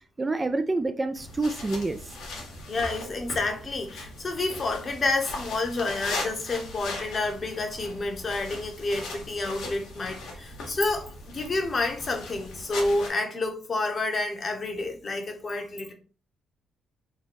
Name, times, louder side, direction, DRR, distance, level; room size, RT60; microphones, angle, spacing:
voice 1, 0.2-2.1, right 2 dB, 25° right, 0.3 m, -27 dB
sound 1, 1.2-13.1, left 2 dB, 85° left, 1.3 m, -39 dB
voice 2, 2.7-15.9, left 2 dB, 40° left, 0.9 m, -29 dB
3.1 x 2.2 x 4.1 m
cardioid pair, 90°, 0 cm